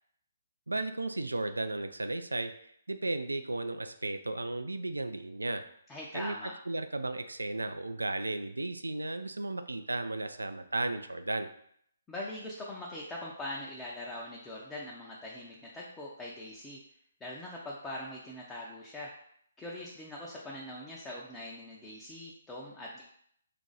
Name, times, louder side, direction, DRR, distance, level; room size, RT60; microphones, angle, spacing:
voice 1, 0.7-5.6 6.1-11.5, right 2 dB, 85° right, 8 dB, 0.3 m, -35 dB
voice 2, 5.9-6.5 12.1-16.8 17.2-19.1 19.6-23.0, left 1 dB, 10° left, -4 dB, 0.5 m, -42 dB
3.0 x 2.5 x 3.9 m, 0.68 s
figure-of-eight pair, 135°, 0 cm